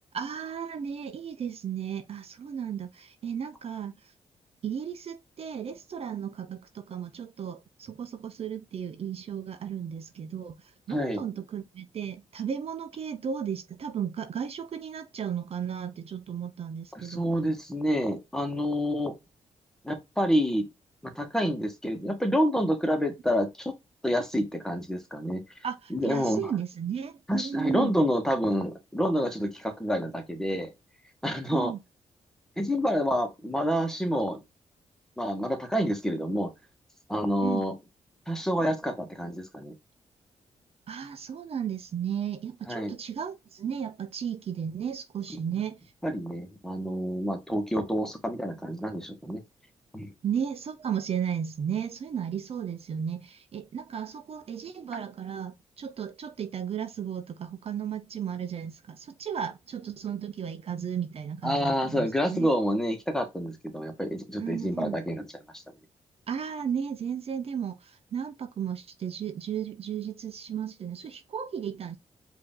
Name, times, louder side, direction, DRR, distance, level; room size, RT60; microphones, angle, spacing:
voice 1, 0.1-4.1 4.6-17.2 25.6-28.0 31.5-31.8 37.4-37.6 40.9-45.8 50.2-62.5 64.4-65.0 66.3-72.0, right 8 dB, 55° right, 0.7 m, -34 dB
voice 2, 10.9-11.2 16.9-19.2 19.8-20.7 21.1-23.7 24.0-25.4 25.9-26.5 27.3-30.7 31.2-31.7 32.6-34.4 35.2-36.5 37.1-37.7 38.3-39.7 42.7-42.9 46.0-49.4 49.9-50.1 61.4-65.2 65.5-65.6, equal, 5° left, 1.5 m, -28 dB
4.9 x 2.9 x 3.6 m
cardioid pair, 90°, 12 cm